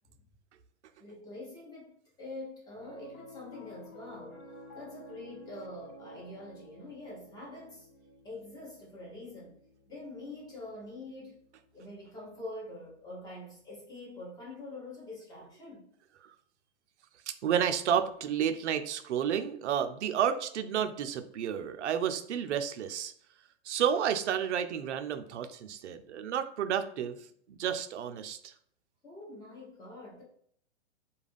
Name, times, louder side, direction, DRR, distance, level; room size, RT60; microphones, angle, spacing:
voice 1, 1.0-4.5 4.7-7.9 8.2-9.6 9.9-11.4 11.7-15.9 29.0-30.2, left 2 dB, 10° left, -5 dB, 1.0 m, -45 dB
Piano, 2.8-13.3, equal, 35° left, 0.6 m, -53 dB
voice 2, 17.3-23.1 23.6-27.2 27.5-28.5, right 8 dB, 75° right, 9 dB, 0.5 m, -31 dB
2.3 x 2.3 x 3.3 m, 0.64 s
hypercardioid pair, 140°, 35 cm